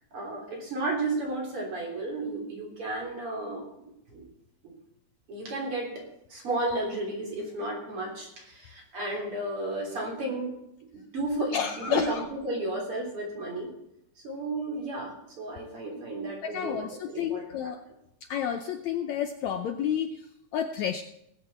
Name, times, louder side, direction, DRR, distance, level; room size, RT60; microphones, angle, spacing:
voice 1, 0.1-3.8 4.1-4.2 5.3-10.5 11.1-13.7 14.2-17.4, right 2 dB, 40° right, -1 dB, 4.2 m, -33 dB
voice 2, 11.5-12.2 16.4-17.8 18.3-20.2 20.5-21.0, left 8 dB, 80° left, 7 dB, 1.6 m, -30 dB
19.5 x 8.1 x 4.3 m, 0.81 s
omnidirectional pair, 4.1 m